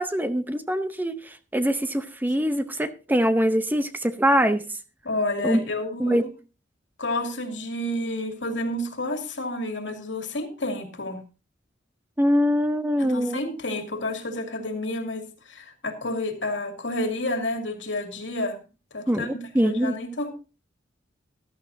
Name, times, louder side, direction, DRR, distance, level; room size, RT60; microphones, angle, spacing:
voice 1, 0.0-4.6 5.4-5.6 6.0-6.2 12.2-13.4 19.1-20.0, equal, 10° right, 10 dB, 0.7 m, -23 dB
voice 2, 5.0-6.2 7.0-11.2 13.0-18.6 18.9-19.3 19.6-20.3, left 1 dB, 75° left, 5 dB, 2.5 m, -30 dB
14.5 x 12.5 x 2.7 m, 0.31 s
head